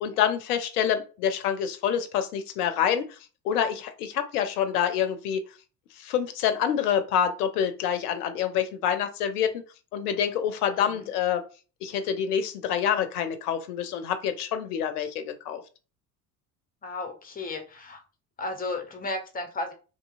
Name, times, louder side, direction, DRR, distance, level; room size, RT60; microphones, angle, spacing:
voice 1, 0.0-3.2 3.4-5.4 5.9-9.6 9.9-11.4 11.8-15.6, left 8 dB, 70° left, 9 dB, 0.6 m, -27 dB
voice 2, 10.7-11.1 16.8-18.0 18.4-19.7, left 2 dB, 20° left, 5 dB, 0.6 m, -34 dB
2.7 x 2.7 x 2.4 m, 0.35 s
figure-of-eight pair, 60°, 47 cm